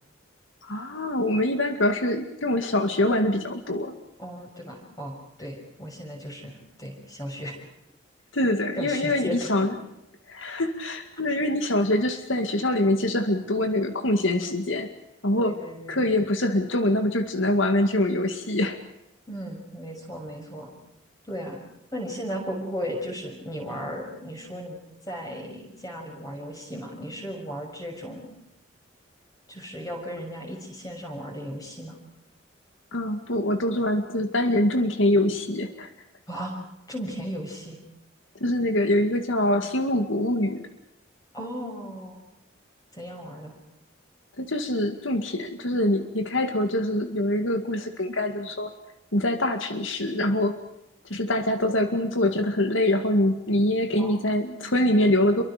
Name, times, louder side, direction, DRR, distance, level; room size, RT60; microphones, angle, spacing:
voice 1, 0.6-3.9 8.3-9.8 10.3-14.9 15.2-15.6 15.9-18.8 32.9-35.9 38.4-40.7 44.4-48.7 49.1-50.6 51.1-55.4, left 1 dB, 75° left, 6 dB, 2.1 m, -24 dB
voice 2, 4.2-7.6 8.8-9.7 15.3-16.1 19.3-20.7 21.3-21.6 21.9-24.8 25.1-28.3 29.5-32.0 36.3-36.5 36.9-37.8 41.3-42.2 42.9-43.5 54.0-54.9, equal, 20° left, 1 dB, 6.6 m, -36 dB
28.5 x 24.0 x 5.1 m, 0.84 s
head